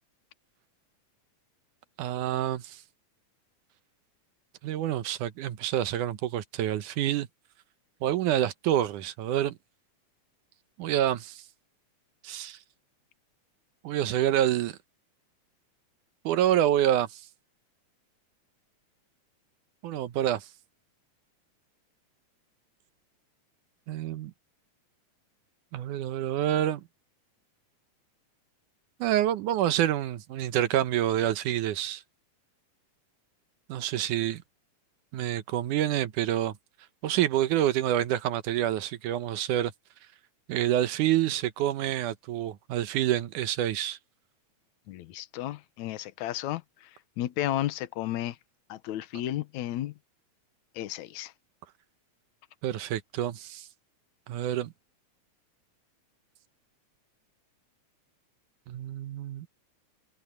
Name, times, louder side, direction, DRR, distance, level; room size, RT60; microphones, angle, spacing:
voice 1, 2.0-2.8 4.6-7.3 8.0-9.6 10.8-11.4 12.2-12.6 13.8-14.8 16.3-17.2 19.8-20.5 23.9-24.3 25.7-26.8 29.0-32.0 33.7-34.4 35.1-36.6 37.0-39.7 40.5-44.0 52.6-53.7 54.3-54.7 58.7-59.5, right 12 dB, 80° right, 2.5 m, -27 dB
voice 2, 44.9-48.4 48.7-49.9 50.8-51.3, left 13 dB, 70° left, 2.3 m, -33 dB
omnidirectional pair, 3.6 m